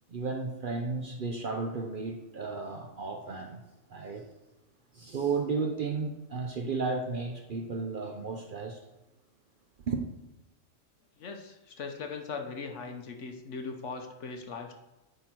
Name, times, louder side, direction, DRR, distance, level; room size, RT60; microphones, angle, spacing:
voice 1, 0.1-3.6 3.9-4.3 4.9-8.8 9.9-10.1, right 4 dB, 50° right, 0.7 m, -33 dB
voice 2, 11.2-14.8, left 4 dB, 65° left, 1.2 m, -39 dB
9.8 x 4.0 x 4.5 m
omnidirectional pair, 1.4 m